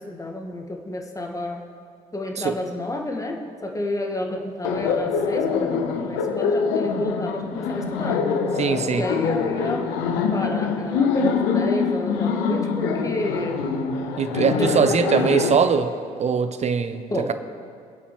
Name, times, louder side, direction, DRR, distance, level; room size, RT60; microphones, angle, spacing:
voice 1, 0.0-1.6 2.1-8.2 8.9-13.6 14.3-15.4 17.1-17.3, left 1 dB, 15° left, 1 dB, 1.6 m, -30 dB
Laughter, 4.6-15.5, left 5 dB, 70° left, 1.0 m, -24 dB
voice 2, 8.6-9.0 14.2-15.9 16.2-17.0, right 6 dB, 35° right, 10 dB, 0.8 m, -21 dB
23.5 x 8.2 x 3.1 m, 2.3 s
figure-of-eight pair, 50°, 19 cm